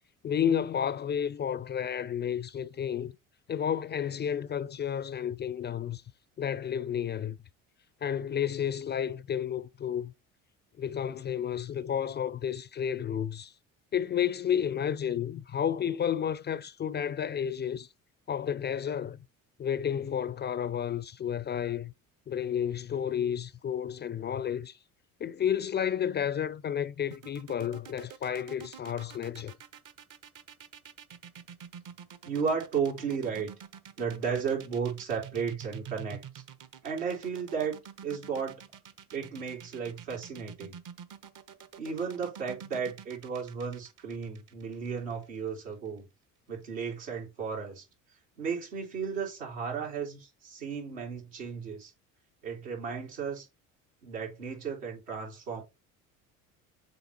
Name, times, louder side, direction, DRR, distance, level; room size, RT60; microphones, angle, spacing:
voice 1, 0.2-3.1 3.5-6.0 6.4-7.4 8.0-10.1 10.8-13.5 13.9-17.9 18.3-19.2 19.6-21.9 22.3-24.8 25.2-29.6, left 9 dB, 30° left, 0.4 m, -31 dB
sound 1, 27.1-45.2, right 8 dB, 55° right, 1.1 m, -47 dB
voice 2, 32.2-33.5 34.0-36.2 36.8-37.8 38.0-38.6 39.1-40.8 41.8-46.1 46.5-47.8 48.4-51.9 52.4-53.5 54.0-55.6, right 6 dB, 85° right, 3.2 m, -34 dB
6.9 x 3.7 x 4.5 m
hypercardioid pair, 65°, 39 cm